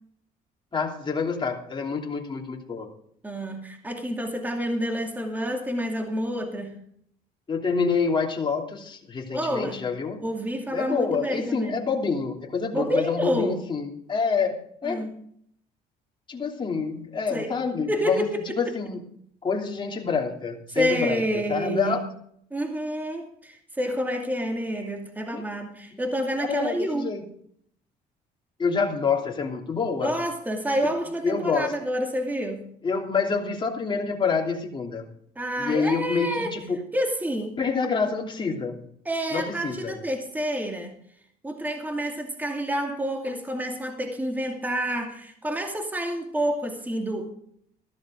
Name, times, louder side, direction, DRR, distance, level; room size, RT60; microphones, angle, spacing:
voice 1, 0.7-2.9 7.5-10.2 10.7-15.0 16.3-18.3 18.5-19.0 19.4-21.2 21.5-22.0 25.3-25.4 26.4-27.2 28.6-30.1 31.2-31.7 32.8-35.1 35.6-36.8 37.6-38.8 39.3-40.0, left 5 dB, 30° left, 0 dB, 3.1 m, -27 dB
voice 2, 3.2-6.8 9.3-9.9 10.2-11.9 12.7-13.6 14.8-15.2 17.3-17.6 17.9-18.6 20.7-22.0 22.5-27.1 30.0-32.7 35.4-36.6 36.9-37.6 39.0-40.9 41.4-47.3, equal, 10° right, 3 dB, 2.4 m, -28 dB
15.0 x 13.0 x 3.8 m, 0.66 s
cardioid pair, 110°, 17 cm